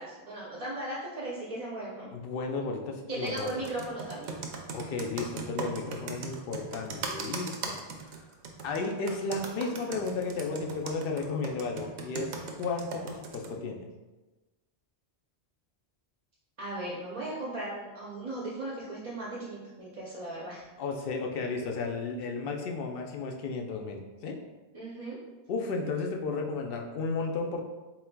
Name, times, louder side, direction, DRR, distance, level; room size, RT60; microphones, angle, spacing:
voice 1, 0.0-2.1 3.1-4.4 16.6-20.7 24.7-25.2, right 2 dB, 40° right, -5 dB, 0.7 m, -37 dB
voice 2, 2.1-3.5 4.7-7.8 8.6-13.9 20.8-24.4 25.5-27.6, left 3 dB, 60° left, 2 dB, 0.7 m, -33 dB
Computer keyboard, 3.3-13.5, right 4 dB, 80° right, 0.9 m, -38 dB
4.1 x 3.9 x 2.2 m, 1.2 s
omnidirectional pair, 1.1 m